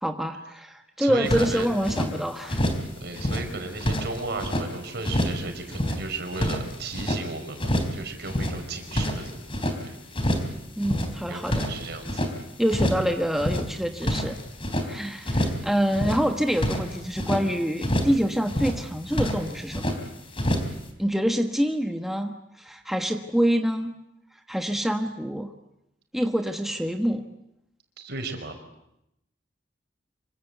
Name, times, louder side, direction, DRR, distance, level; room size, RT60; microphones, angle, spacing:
voice 1, 0.0-2.7 10.8-11.7 12.6-14.4 14.8-19.9 21.0-23.9 24.5-25.5 26.1-27.2, equal, ahead, 4 dB, 1.3 m, -26 dB
voice 2, 1.0-1.7 3.0-9.4 9.8-10.0 11.3-12.2 28.0-28.6, right 3 dB, 60° right, 5 dB, 5.4 m, -35 dB
sound 1, 1.3-2.1 2.5-2.9 3.1-4.7 5.0-5.4 5.7-7.2 7.6-8.0 8.2-9.8 10.1-10.5 10.8-12.3 12.7-13.1 13.3-14.9 15.2-15.6 15.9-17.4 17.8-18.2 18.5-18.8 19.1-20.0 20.3-20.8, equal, 30° left, 3.7 m, -27 dB
26.5 x 25.0 x 8.2 m, 0.82 s
head